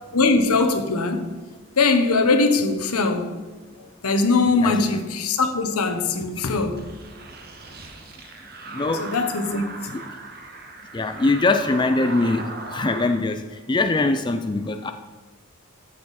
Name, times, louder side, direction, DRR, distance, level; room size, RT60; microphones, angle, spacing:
voice 1, 0.1-1.3 1.8-3.4 3.8-6.8 9.0-9.9, left 3 dB, 90° left, 1.1 m, -21 dB
sound 1, 6.7-13.2, right 3 dB, 45° right, 1.1 m, -38 dB
voice 2, 8.7-9.0 9.9-10.0 10.9-13.4 13.7-14.9, left 2 dB, 20° left, 0.4 m, -22 dB
13.0 x 6.9 x 4.2 m
head